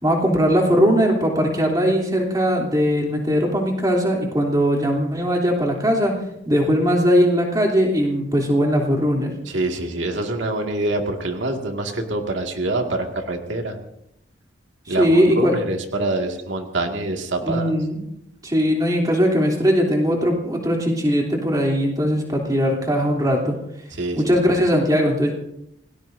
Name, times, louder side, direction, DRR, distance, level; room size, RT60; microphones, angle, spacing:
voice 1, 0.0-6.1 6.4-9.3 14.9-15.5 17.4-18.0 18.4-23.5 24.2-25.3, equal, 20° right, 0 dB, 3.1 m, -19 dB
voice 2, 9.5-13.8 14.9-17.7 24.0-24.3, right 2 dB, 85° right, 2 dB, 2.1 m, -25 dB
28.0 x 18.5 x 2.7 m, 0.78 s
head